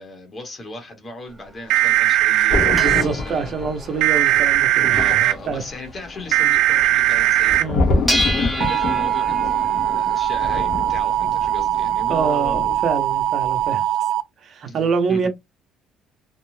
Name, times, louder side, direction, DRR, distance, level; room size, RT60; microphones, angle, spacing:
voice 1, 0.0-3.5 4.8-12.7 14.6-15.2, left 2 dB, 20° left, 0.9 m, -37 dB
sound 1, 1.3-6.8 7.1-7.2 7.5-12.4, equal, 5° right, 0.7 m, -31 dB
sound 2, 1.7-3.0 4.0-5.3 6.3-7.6 8.6-14.2, right 13 dB, 75° right, 0.4 m, -19 dB
Thunder, 2.5-13.1 13.4-13.7, left 3 dB, 50° left, 0.9 m, -28 dB
voice 2, 2.7-5.6 7.6-7.9 12.1-13.9 14.4-15.3, right 5 dB, 45° right, 0.7 m, -26 dB
2.5 x 2.1 x 3.1 m
cardioid pair, 165°, 0 cm